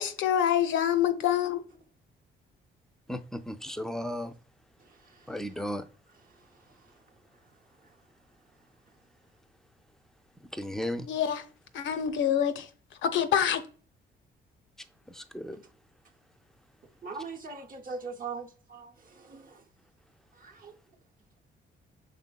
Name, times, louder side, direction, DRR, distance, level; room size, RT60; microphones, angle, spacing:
voice 1, 0.0-1.6 11.1-11.4 11.7-12.7 13.0-13.6, left 9 dB, 75° left, 0.5 m, -26 dB
voice 2, 3.1-4.4 5.3-5.9 10.4-11.1 15.1-15.6, equal, ahead, 0.4 m, -35 dB
voice 3, 4.8-5.3 6.8-6.9 17.0-19.6 20.4-20.7, right 4 dB, 45° right, 0.7 m, -41 dB
5.1 x 3.5 x 2.2 m
cardioid pair, 90°, 20 cm